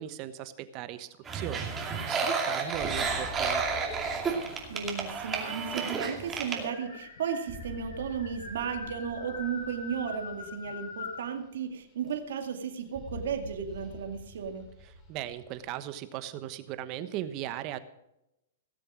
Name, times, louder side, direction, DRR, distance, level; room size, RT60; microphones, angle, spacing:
voice 1, 0.0-3.9 14.8-17.8, right 12 dB, 35° right, 13 dB, 1.1 m, -38 dB
sound 1, 1.1-2.6 3.1-3.8 4.8-4.9 5.1-5.2 5.6-11.3, left 4 dB, 85° left, 4.3 m, -44 dB
sound 2, 1.2-11.7 12.1-12.5 12.8-15.7, left 2 dB, 20° left, 3.6 m, -48 dB
sound 3, 1.3-6.7, right 5 dB, 15° right, 2.4 m, -31 dB
voice 2, 4.7-14.6, right 7 dB, 75° right, 5 dB, 2.2 m, -34 dB
18.0 x 7.5 x 6.2 m, 0.87 s
hypercardioid pair, 145°, 0 cm